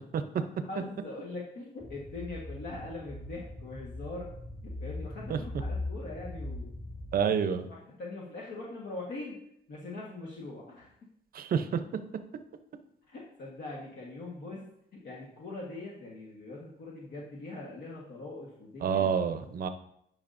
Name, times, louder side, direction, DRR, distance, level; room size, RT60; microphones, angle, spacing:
voice 1, 0.7-4.3 4.8-6.7 7.7-9.4 9.7-10.9 13.1-19.1, left 2 dB, 60° left, -4 dB, 1.4 m, -42 dB
sound 1, 1.8-7.2, left 2 dB, ahead, 0.4 m, -40 dB
voice 2, 7.1-7.7 11.3-11.8 18.8-19.7, right 7 dB, 50° right, 9 dB, 0.7 m, -28 dB
10.5 x 5.2 x 2.6 m, 0.74 s
cardioid pair, 120°, 19 cm